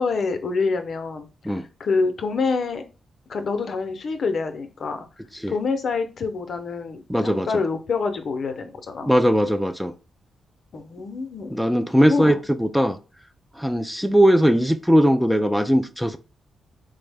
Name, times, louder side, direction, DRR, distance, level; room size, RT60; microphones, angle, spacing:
voice 1, 0.0-1.3 1.8-2.8 3.3-5.1 5.5-9.1 10.7-11.6 12.1-12.4, left 4 dB, 60° left, 0.5 m, -26 dB
voice 2, 7.1-7.5 9.0-9.9 11.5-13.0 13.6-16.2, equal, ahead, 0.4 m, -19 dB
3.7 x 2.0 x 3.3 m
supercardioid pair, 55°, 0 cm